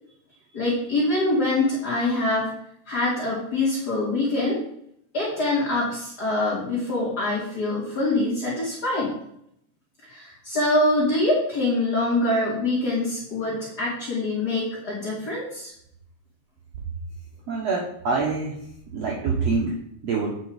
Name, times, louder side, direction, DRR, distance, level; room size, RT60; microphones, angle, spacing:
voice 1, 0.5-2.5 2.9-4.6 5.1-9.1 10.1-15.7, left 2 dB, 30° left, -7 dB, 2.8 m, -24 dB
voice 2, 17.5-18.5 18.9-19.8 20.0-20.3, right 4 dB, 55° right, -3 dB, 2.1 m, -25 dB
9.9 x 5.6 x 5.1 m, 0.71 s
omnidirectional pair, 4.0 m